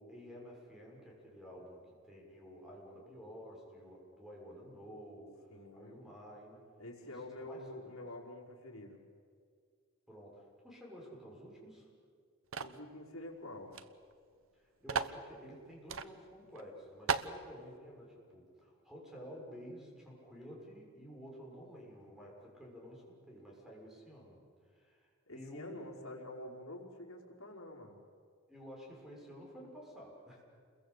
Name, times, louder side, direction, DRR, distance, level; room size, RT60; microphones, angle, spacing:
voice 1, 0.0-6.6 7.0-7.7 10.1-11.9 14.5-25.8 28.5-30.4, equal, ahead, -2 dB, 6.6 m, -52 dB
voice 2, 5.5-6.0 6.8-9.0 12.6-13.8 25.3-28.0, left 1 dB, 80° left, -1 dB, 4.9 m, -47 dB
sound 1, 12.5-12.8 13.7-13.8 14.1-14.2 14.9-15.2 15.9-16.1 16.5-16.6 17.1-17.4, right 6 dB, 70° right, 1.0 m, -35 dB
29.5 x 22.0 x 8.3 m, 2.1 s
head